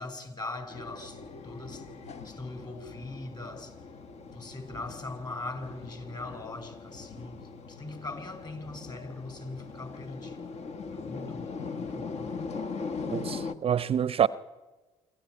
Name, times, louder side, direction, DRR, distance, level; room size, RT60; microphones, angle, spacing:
voice 1, 0.0-1.9 2.2-4.0 4.3-10.5 10.9-12.6, left 2 dB, 30° left, 5.2 m, -41 dB
sound 1, 0.7-13.5, left 4 dB, 50° left, 1.3 m, -40 dB
voice 2, 13.1-14.3, right 8 dB, 40° right, 0.6 m, -26 dB
25.0 x 14.5 x 9.4 m
hypercardioid pair, 50°, 14 cm